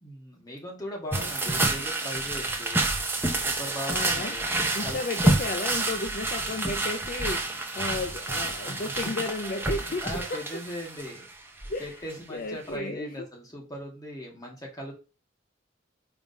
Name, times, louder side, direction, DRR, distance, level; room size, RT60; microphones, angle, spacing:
voice 1, 0.0-2.9 3.4-5.0 8.7-9.1 9.4-11.2 11.8-14.9, equal, 20° left, 2.0 m, -39 dB
sound 1, 1.1-11.3 11.6-11.8 12.1-12.2, right 2 dB, 10° right, 0.8 m, -28 dB
voice 2, 1.2-1.8 3.9-4.4 4.7-10.0 10.3-10.4 11.7-12.0 12.3-13.3, left 2 dB, 45° left, 0.5 m, -34 dB
5.0 x 3.7 x 5.2 m
head